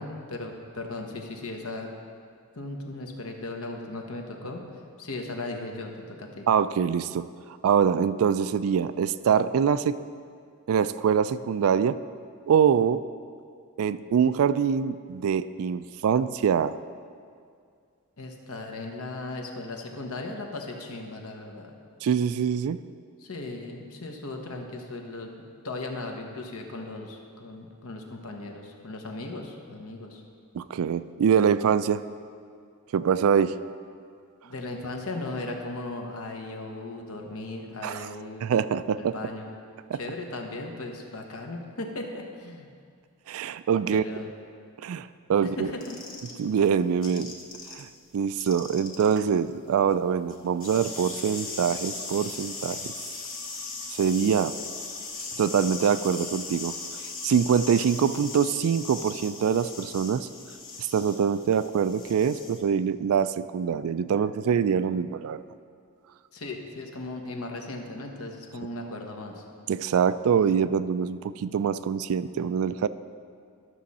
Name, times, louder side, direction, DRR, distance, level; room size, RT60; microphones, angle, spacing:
voice 1, 0.0-1.9 2.5-4.6 5.0-6.4 18.2-21.7 23.2-25.3 25.6-30.2 34.4-38.5 39.0-39.5 39.9-42.7 43.9-44.3 45.4-46.0 66.3-69.4, left 2 dB, 70° left, 3 dB, 1.1 m, -37 dB
voice 2, 6.5-7.3 7.6-10.0 10.7-12.0 12.5-13.0 13.8-16.8 22.0-22.8 30.5-32.0 32.9-33.5 37.8-38.1 38.4-39.1 39.9-40.0 43.3-44.0 44.8-45.7 46.4-47.3 47.7-47.9 48.1-52.9 53.9-54.5 55.4-56.7 57.2-60.3 60.8-65.4 69.7-72.9, right 7 dB, 70° right, 14 dB, 0.3 m, -24 dB
sound 1, 45.8-47.8 48.1-62.6, left 4 dB, 40° left, 1.4 m, -38 dB
13.0 x 6.3 x 4.2 m, 2.2 s
head